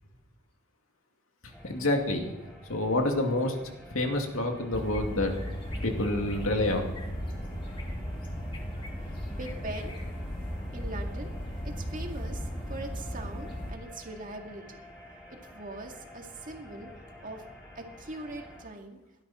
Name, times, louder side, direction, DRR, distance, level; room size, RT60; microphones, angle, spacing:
sound 1, 1.5-18.6, left 1 dB, 5° left, 5.6 m, -49 dB
voice 1, 1.6-2.3 2.7-3.6 3.9-5.3 5.8-6.9, left 1 dB, 80° left, 3 dB, 2.4 m, -28 dB
sound 2, 4.7-13.7, equal, 25° left, 2.3 m, -36 dB
voice 2, 9.3-10.0 10.7-14.8 15.5-16.9 17.2-17.4 17.8-19.0, right 2 dB, 40° right, 3 dB, 2.1 m, -41 dB
17.5 x 12.0 x 4.3 m, 0.99 s
head